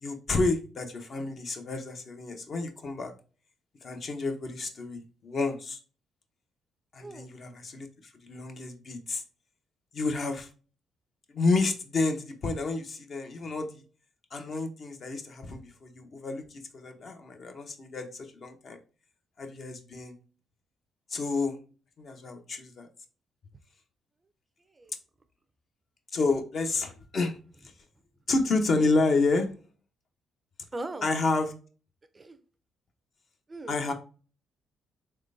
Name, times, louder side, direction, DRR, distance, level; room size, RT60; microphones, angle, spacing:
voice 1, 0.0-3.1 3.8-5.8 6.9-7.9 8.3-9.2 9.9-10.5 11.3-13.8 14.3-18.8 19.4-20.1 21.1-21.6 22.0-22.9 26.1-27.4 28.3-29.5 31.0-31.5 33.7-33.9, left 3 dB, 50° left, 5 dB, 0.8 m, -30 dB
voice 2, 30.7-31.1 32.1-32.4 33.5-33.7, right 2 dB, 25° right, 11 dB, 0.4 m, -39 dB
3.6 x 3.3 x 2.5 m, 0.36 s
cardioid pair, 90°, 0 cm